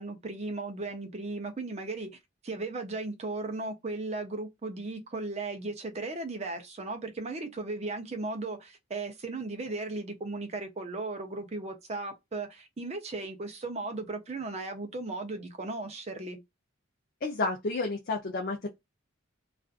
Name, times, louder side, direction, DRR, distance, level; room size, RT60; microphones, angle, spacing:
voice 1, 0.0-2.2 2.4-16.4, right 3 dB, 30° right, 0.5 m, -36 dB
voice 2, 17.2-18.7, left 3 dB, 45° left, 0.5 m, -31 dB
2.5 x 2.4 x 2.3 m
head